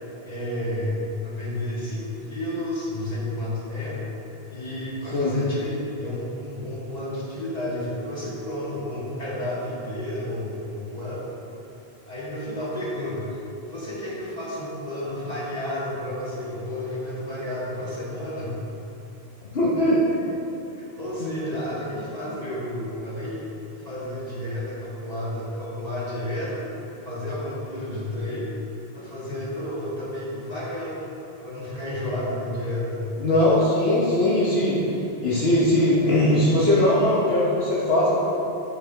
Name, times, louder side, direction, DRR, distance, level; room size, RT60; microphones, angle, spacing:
voice 1, 0.2-4.1 4.5-11.2 12.1-18.6 20.8-23.4 23.8-26.6 27.0-28.5 28.9-31.0 31.4-33.1, left 1 dB, 40° left, -8 dB, 2.0 m, -31 dB
voice 2, 19.5-20.0 21.2-21.3 33.2-34.8 35.2-38.3, left 1 dB, 75° left, -7 dB, 1.3 m, -20 dB
8.6 x 6.6 x 3.4 m, 2.9 s
omnidirectional pair, 1.1 m